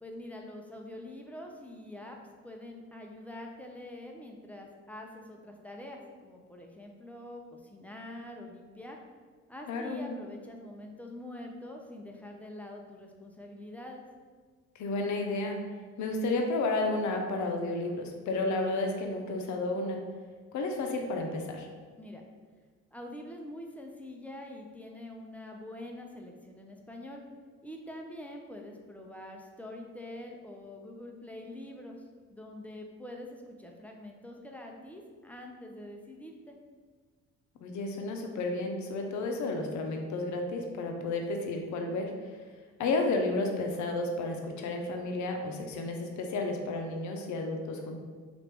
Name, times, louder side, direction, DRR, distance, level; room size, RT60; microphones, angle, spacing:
voice 1, 0.0-2.2 2.4-9.0 9.5-14.1 22.0-22.2 22.9-27.2 27.6-32.0 32.3-36.6, left 1 dB, 5° left, 1 dB, 0.4 m, -45 dB
voice 2, 9.7-10.2 14.8-15.6 16.0-20.0 20.5-21.7 37.6-42.1 42.8-48.0, left 2 dB, 70° left, 3 dB, 0.6 m, -32 dB
3.1 x 2.5 x 3.3 m, 1.5 s
cardioid pair, 90°, 30 cm